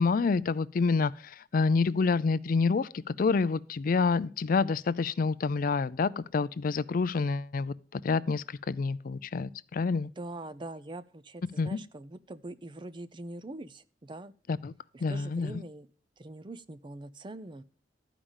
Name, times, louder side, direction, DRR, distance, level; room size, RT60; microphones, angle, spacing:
voice 1, 0.0-2.9 3.2-10.1 11.6-11.8 14.6-14.7 15.0-15.5, left 4 dB, 50° left, 0.4 m, -28 dB
voice 2, 10.2-14.3 14.9-15.9 16.2-17.6, right 2 dB, 25° right, 0.5 m, -43 dB
12.5 x 5.1 x 7.2 m
head